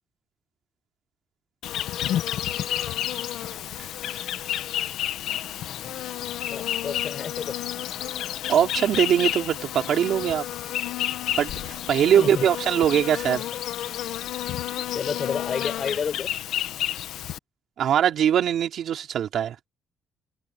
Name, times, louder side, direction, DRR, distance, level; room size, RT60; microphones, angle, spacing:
Insect, 1.6-17.4, left 12 dB, 80° left, 1.3 m, -30 dB
voice 1, 6.5-7.5 12.0-12.5 13.3-13.5 14.7-16.4, left 6 dB, 50° left, 5.9 m, -32 dB
voice 2, 8.5-10.5 11.4-13.4 17.8-19.6, right 9 dB, 70° right, 3.6 m, -22 dB
cardioid pair, 90°, 0 cm